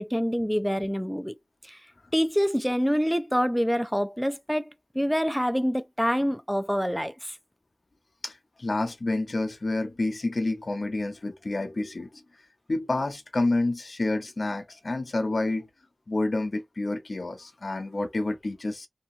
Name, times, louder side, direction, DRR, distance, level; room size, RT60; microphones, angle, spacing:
voice 1, 0.0-1.3 1.6-1.8 2.1-7.4, equal, ahead, 0.4 m, -26 dB
voice 2, 8.2-12.1 12.7-15.7 16.1-18.9, left 2 dB, 65° left, 0.5 m, -29 dB
2.7 x 2.4 x 2.6 m
wide cardioid pair, 55°, 0 cm